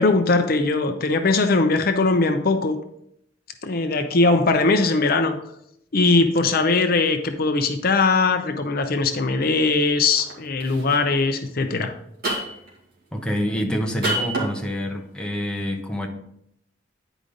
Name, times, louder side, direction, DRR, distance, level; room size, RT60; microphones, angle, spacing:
voice 1, 0.0-2.8 3.6-5.4 5.9-11.9, left 3 dB, 50° left, 7 dB, 0.6 m, -20 dB
sound 1, 10.1-10.3 10.6-11.0 12.2-12.7 14.0-14.5, right 2 dB, 55° right, 2.3 m, -26 dB
voice 2, 13.1-16.1, equal, 5° left, 1 dB, 0.9 m, -26 dB
9.8 x 5.0 x 3.8 m, 0.75 s
head